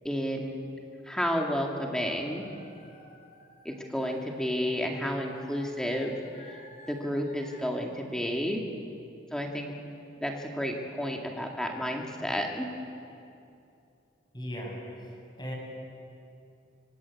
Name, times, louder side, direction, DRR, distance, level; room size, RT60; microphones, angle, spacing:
voice 1, 0.0-0.5 1.1-2.5 3.6-6.6 6.9-8.6 9.3-9.7 10.2-12.7, equal, 5° left, 0 dB, 2.1 m, -31 dB
sound 1, 1.9-7.7, left 1 dB, 40° left, 4.5 m, -53 dB
voice 2, 14.3-15.5, equal, 25° left, -1 dB, 7.0 m, -38 dB
26.0 x 25.0 x 8.5 m, 2.6 s
head